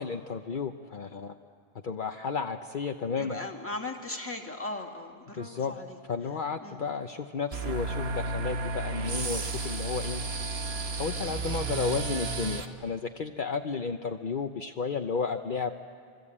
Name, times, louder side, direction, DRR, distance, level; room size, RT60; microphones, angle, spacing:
voice 1, 0.0-1.3 1.8-3.4 5.4-5.7 6.1-10.2 10.9-15.7, left 5 dB, 55° left, 5 dB, 0.9 m, -32 dB
voice 2, 3.2-6.0 6.6-6.8, left 2 dB, 15° left, 1 dB, 2.1 m, -38 dB
sound 1, 7.5-12.7, right 3 dB, 80° right, 1.6 m, -32 dB
27.0 x 26.0 x 8.6 m, 2.2 s
omnidirectional pair, 1.0 m